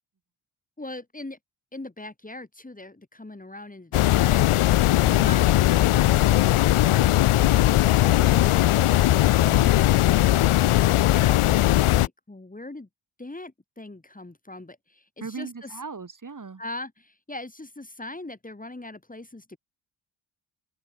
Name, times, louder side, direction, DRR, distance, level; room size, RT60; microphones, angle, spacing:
voice 1, 0.8-1.4 1.7-7.0 12.0-12.9 13.2-15.1 15.4-15.7 16.6-19.6, left 2 dB, 15° left, 4.0 m, -41 dB
sound 1, 3.9-12.1, left 15 dB, 80° left, 0.9 m, -19 dB
voice 2, 15.2-16.6, right 5 dB, 40° right, 5.1 m, -38 dB
open air
cardioid pair, 80°, 49 cm